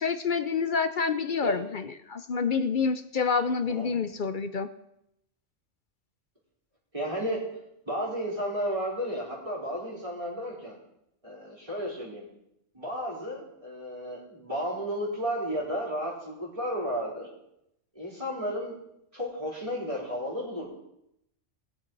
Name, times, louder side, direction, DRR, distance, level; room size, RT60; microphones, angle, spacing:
voice 1, 0.0-4.7, left 5 dB, 55° left, 10 dB, 0.6 m, -28 dB
voice 2, 3.7-4.0 6.9-7.4 7.9-10.8 11.2-12.2 12.7-17.3 17.9-18.8 19.1-20.7, equal, 25° right, -5 dB, 4.0 m, -33 dB
19.5 x 7.1 x 3.9 m, 0.80 s
omnidirectional pair, 1.3 m